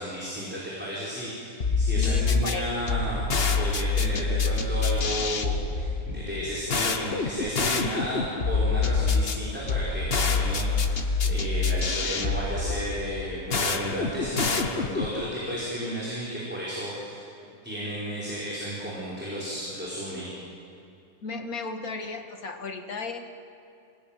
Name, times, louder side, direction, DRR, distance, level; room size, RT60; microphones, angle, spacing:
voice 1, 0.0-3.2 3.5-17.2 17.6-20.3, equal, 5° right, -8 dB, 5.6 m, -33 dB
sound 1, 1.6-15.2, left 4 dB, 45° left, 1.5 m, -26 dB
voice 2, 1.9-2.6 21.2-23.3, left 3 dB, 85° left, 4 dB, 2.3 m, -35 dB
27.5 x 18.5 x 9.3 m, 2.6 s
omnidirectional pair, 1.5 m